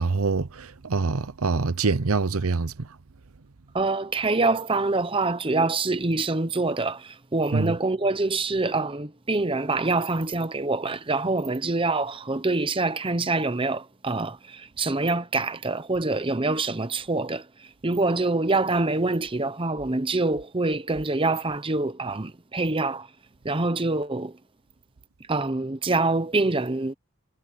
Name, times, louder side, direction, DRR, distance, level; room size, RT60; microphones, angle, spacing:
voice 1, 0.0-2.9 7.5-7.7, right 4 dB, 85° right, 0.8 m, -25 dB
voice 2, 3.7-23.1 23.4-24.4 25.3-26.9, right 3 dB, 25° right, 0.8 m, -25 dB
head